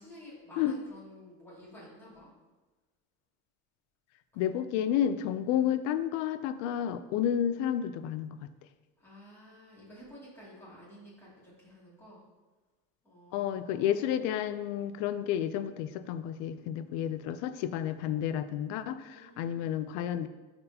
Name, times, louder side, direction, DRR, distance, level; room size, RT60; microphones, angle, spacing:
voice 1, 0.0-2.3 4.3-4.5 9.0-12.2 13.0-14.1 19.0-19.8, equal, 10° left, -7 dB, 2.4 m, -52 dB
voice 2, 4.4-8.4 13.3-20.3, left 10 dB, 70° left, 12 dB, 0.5 m, -31 dB
12.0 x 4.3 x 2.8 m, 1.2 s
cardioid pair, 160°, 30 cm